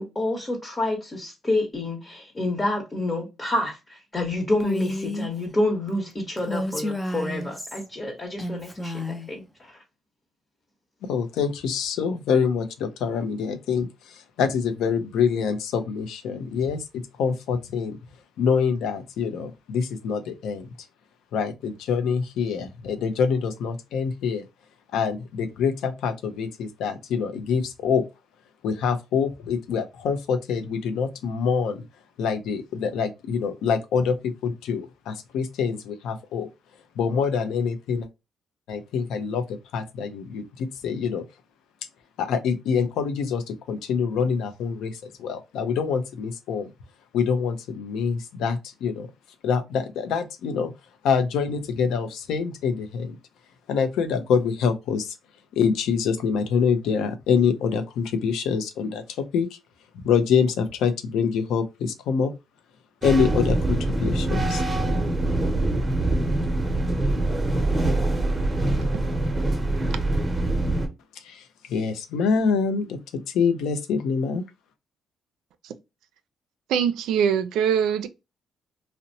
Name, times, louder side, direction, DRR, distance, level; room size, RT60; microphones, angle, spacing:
voice 1, 0.0-9.7, left 1 dB, 25° left, 1.0 m, -28 dB
Female speech woman speaking, 4.6-5.3 6.4-7.8 8.4-9.3, left 1 dB, 10° left, 0.5 m, -30 dB
voice 2, 11.1-18.0 18.4-20.7 21.3-24.4 24.9-28.0 28.6-31.8 32.2-36.5 37.0-38.1 38.7-41.2 42.2-46.7 47.1-49.1 49.4-50.7 51.0-53.2 53.7-55.1 55.5-59.0 59.3-59.6 60.0-62.3 63.0-64.6 71.2-71.4 71.7-73.0 73.3-74.4, left 6 dB, 85° left, 0.5 m, -25 dB
sound 1, 63.0-70.9, right 2 dB, 20° right, 0.8 m, -24 dB
voice 3, 76.7-78.1, right 8 dB, 85° right, 0.3 m, -22 dB
2.8 x 2.0 x 2.6 m
cardioid pair, 90°, 0 cm